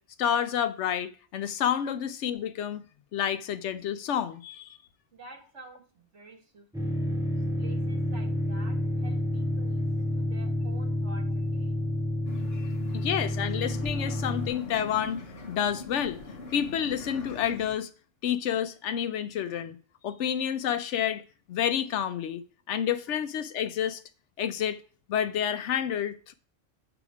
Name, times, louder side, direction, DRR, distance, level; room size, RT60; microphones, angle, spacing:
voice 1, 0.2-2.8 3.1-4.8 12.6-15.2 15.5-16.2 16.5-17.9 18.2-19.8 20.0-21.2 21.5-22.4 22.7-24.0 24.4-24.8 25.1-26.3, left 9 dB, 85° left, 1.0 m, -29 dB
voice 2, 5.1-7.0 7.6-11.9, right 3 dB, 90° right, 2.0 m, -50 dB
sound 1, 6.7-14.5, left 1 dB, 5° right, 0.9 m, -29 dB
sound 2, 12.2-17.7, left 3 dB, 60° left, 1.3 m, -42 dB
6.9 x 5.0 x 4.9 m
omnidirectional pair, 1.2 m